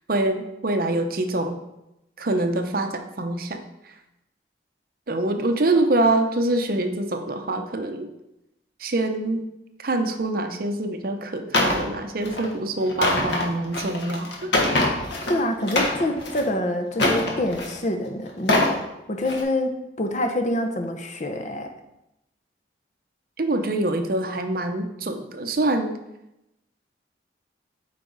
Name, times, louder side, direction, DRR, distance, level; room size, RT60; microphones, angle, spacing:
voice 1, 0.1-1.6 2.2-3.9 5.1-8.1 8.8-9.5 9.8-14.5 23.4-25.9, right 2 dB, 55° right, 6 dB, 0.7 m, -25 dB
sound 1, 11.5-11.8 12.2-12.5 12.9-15.3 15.6-16.4 16.9-17.8 18.3-18.8 19.2-19.4, left 2 dB, 80° left, 1.3 m, -23 dB
voice 2, 15.3-18.8 19.1-21.7, left 1 dB, 40° left, 5 dB, 0.7 m, -26 dB
8.6 x 4.8 x 4.0 m, 0.89 s
head